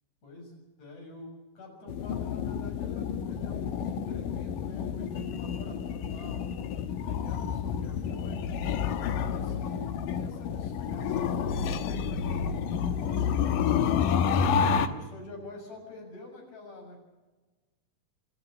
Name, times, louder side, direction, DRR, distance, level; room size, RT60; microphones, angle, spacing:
voice 1, 0.2-6.4 6.8-8.5 9.0-13.9 14.5-17.0, left 2 dB, 55° left, 1 dB, 8.0 m, -47 dB
sound 1, 1.9-14.9, left 7 dB, 85° left, 2.8 m, -29 dB
28.5 x 12.5 x 9.2 m, 1.2 s
omnidirectional pair, 3.8 m